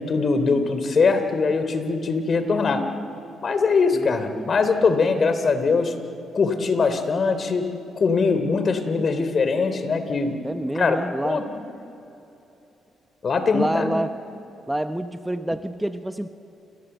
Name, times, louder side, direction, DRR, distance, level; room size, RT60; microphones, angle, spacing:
voice 1, 0.0-2.8 3.4-5.9 6.3-7.7 8.0-10.3 10.7-11.0 11.2-11.4 13.2-13.9, left 4 dB, 45° left, 9 dB, 3.3 m, -22 dB
voice 2, 3.9-4.5 10.4-11.4 13.5-14.1 14.7-16.3, right 1 dB, 5° right, 8 dB, 1.0 m, -27 dB
29.0 x 23.5 x 8.1 m, 2.9 s
cardioid pair, 90°, 0 cm